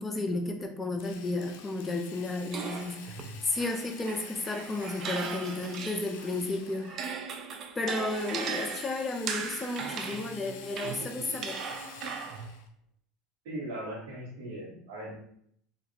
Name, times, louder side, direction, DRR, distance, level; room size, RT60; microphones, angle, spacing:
voice 1, 0.0-7.0 7.7-11.5, left 2 dB, 20° left, 3 dB, 0.5 m, -33 dB
Drill, 1.0-7.1 8.0-12.7, left 7 dB, 80° left, 0.4 m, -48 dB
sound 1, 2.5-6.3 6.7-12.5, right 6 dB, 40° right, 0.4 m, -38 dB
voice 2, 13.4-15.1, right 1 dB, 80° right, -8 dB, 1.2 m, -39 dB
2.8 x 2.5 x 2.7 m, 0.65 s
supercardioid pair, 115°, 0 cm